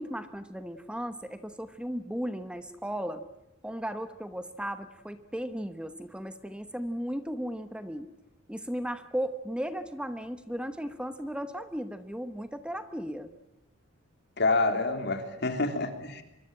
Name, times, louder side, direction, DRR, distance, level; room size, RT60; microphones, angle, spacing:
voice 1, 0.0-3.2 3.6-8.1 8.5-13.3, equal, 5° right, 10 dB, 1.0 m, -36 dB
voice 2, 14.4-16.2, left 3 dB, 55° left, 6 dB, 3.4 m, -27 dB
25.0 x 23.5 x 8.9 m, 0.87 s
head